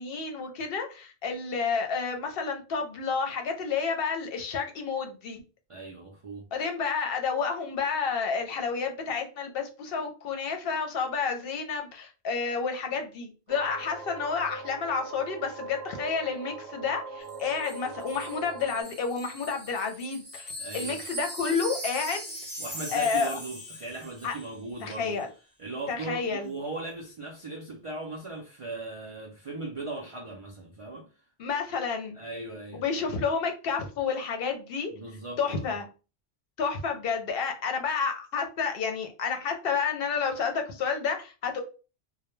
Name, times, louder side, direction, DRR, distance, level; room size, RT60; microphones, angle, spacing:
voice 1, 0.0-5.4 6.5-22.4 22.9-23.4 24.2-24.3 24.8-25.3 25.9-26.5 31.4-32.2 32.8-34.9 35.4-35.8 36.6-41.6, left 5 dB, 65° left, 0.7 m, -30 dB
voice 2, 5.7-6.5 20.6-21.0 22.6-25.2 25.6-31.1 32.1-32.8 34.9-35.7, right 2 dB, 55° right, 0.4 m, -38 dB
sound 1, 13.5-18.8, right 3 dB, 80° right, 0.8 m, -41 dB
Wind chime, 17.3-24.5 24.8-25.0, right 1 dB, 10° left, 0.6 m, -40 dB
2.1 x 2.1 x 3.0 m
omnidirectional pair, 1.1 m